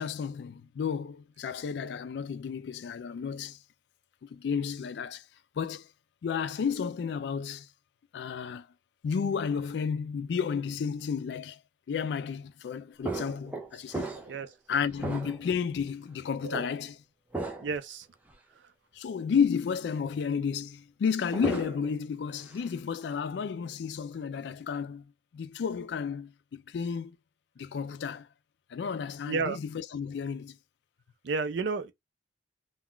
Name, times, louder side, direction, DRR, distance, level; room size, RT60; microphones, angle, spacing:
voice 1, 0.0-3.6 4.2-5.2 5.6-5.9 6.2-7.7 8.1-8.7 9.0-11.6 11.9-14.2 14.7-17.0 18.9-27.2 27.6-28.3 28.7-30.6, left 6 dB, 65° left, 0.3 m, -32 dB
sound 1, 13.0-14.5 14.9-15.6 16.5-16.7 17.3-17.8 18.3-18.4 21.1-22.0 22.3-22.7, right 2 dB, 10° right, 0.5 m, -36 dB
voice 2, 17.6-18.1 29.3-29.6 31.2-31.9, right 4 dB, 75° right, 0.5 m, -31 dB
2.3 x 2.2 x 3.6 m
head